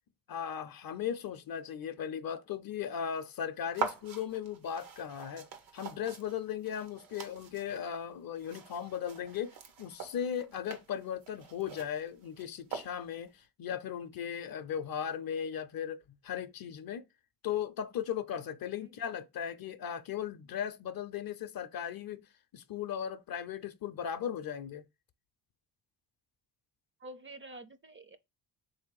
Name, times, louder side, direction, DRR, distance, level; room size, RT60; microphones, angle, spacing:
voice 1, 0.3-5.5 5.7-17.0 17.4-22.2 22.5-24.8, left 9 dB, 50° left, 0.5 m, -37 dB
sound 1, 3.7-13.3, right 6 dB, 85° right, 0.9 m, -44 dB
voice 2, 27.0-28.2, right 1 dB, 30° right, 0.4 m, -48 dB
3.4 x 2.7 x 4.6 m
cardioid pair, 65°, 46 cm